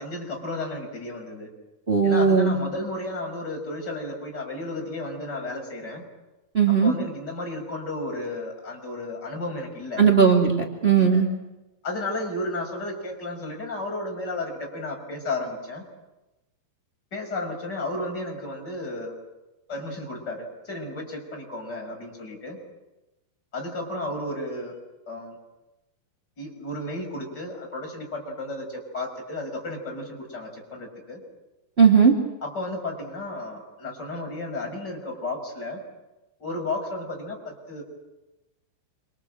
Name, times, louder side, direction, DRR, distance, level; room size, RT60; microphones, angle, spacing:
voice 1, 0.0-1.5 2.0-6.0 6.7-10.1 10.9-11.2 11.8-15.8 17.1-19.1 19.7-22.6 23.5-24.8 25.1-25.4 26.4-31.2 32.4-35.8 36.4-37.8, left 2 dB, 20° left, 1 dB, 6.5 m, -33 dB
voice 2, 1.9-2.5 6.5-6.9 10.0-11.3 31.8-32.1, right 6 dB, 85° right, 0 dB, 0.5 m, -17 dB
27.5 x 26.5 x 7.8 m, 1.0 s
omnidirectional pair, 5.6 m